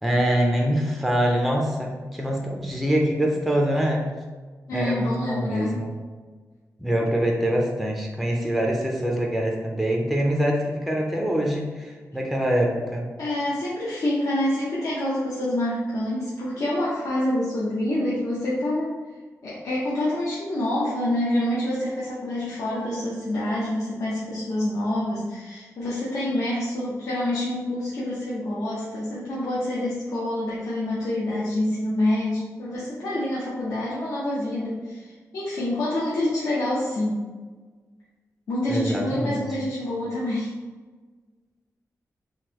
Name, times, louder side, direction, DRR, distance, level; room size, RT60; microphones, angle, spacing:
voice 1, 0.0-4.1 4.7-5.9 6.8-13.0 38.7-39.4, equal, ahead, -1 dB, 0.4 m, -24 dB
voice 2, 4.7-5.8 13.2-19.0 19.4-37.2 38.5-40.5, left 1 dB, 70° left, -7 dB, 0.7 m, -27 dB
3.7 x 2.6 x 2.9 m, 1.4 s
wide cardioid pair, 175°, 6 cm